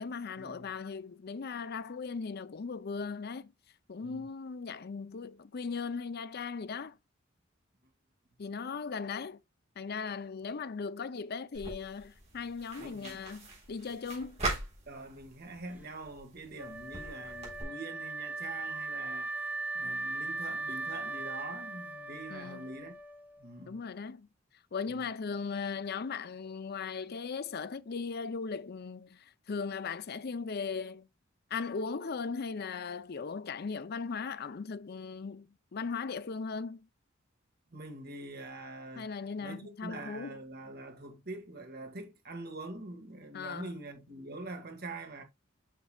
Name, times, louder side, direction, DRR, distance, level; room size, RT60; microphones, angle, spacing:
voice 1, 0.0-3.5 3.9-7.0 8.4-9.4 9.8-14.4 22.3-22.7 23.7-24.3 24.7-31.1 31.5-36.9 39.0-40.4 43.3-43.7, left 5 dB, 55° left, 0.5 m, -38 dB
sound 1, 11.5-17.6, right 2 dB, 35° right, 3.7 m, -42 dB
voice 2, 12.8-13.2 14.9-19.3 19.7-22.9 23.4-23.8 24.9-25.1 37.7-39.1 39.4-45.2, right 2 dB, 50° right, 1.9 m, -44 dB
Wind instrument woodwind instrument, 16.6-23.6, right 3 dB, 10° right, 0.9 m, -39 dB
8.1 x 6.0 x 2.3 m
head